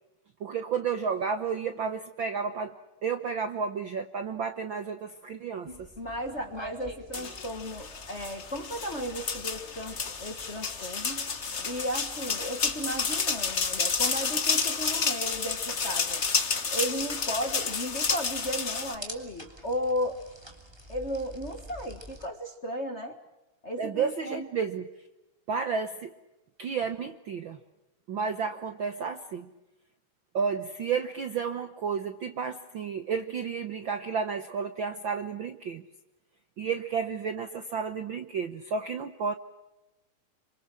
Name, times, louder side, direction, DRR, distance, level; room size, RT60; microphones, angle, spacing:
voice 1, 0.4-2.7 3.0-5.9 23.8-24.9 25.5-26.1 26.6-27.6 28.1-29.5 30.3-35.8 36.6-39.3, right 6 dB, 60° right, 8 dB, 1.3 m, -32 dB
sound 1, 5.6-22.3, right 1 dB, 10° right, 2.9 m, -48 dB
voice 2, 6.0-11.3 11.6-16.2 16.7-20.3 20.9-23.2 23.6-24.5, equal, 30° left, 6 dB, 1.3 m, -35 dB
sound 2, 7.1-19.0, left 5 dB, 45° left, 0.8 m, -30 dB
27.0 x 25.5 x 6.2 m, 0.99 s
omnidirectional pair, 3.4 m